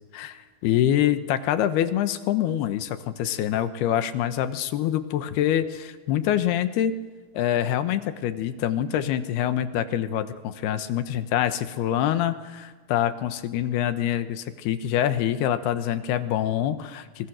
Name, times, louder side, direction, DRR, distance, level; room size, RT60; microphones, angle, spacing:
voice 1, 0.1-6.9 7.3-17.3, left 11 dB, 85° left, 10 dB, 3.1 m, -25 dB
26.0 x 24.0 x 6.5 m, 1.4 s
omnidirectional pair, 4.6 m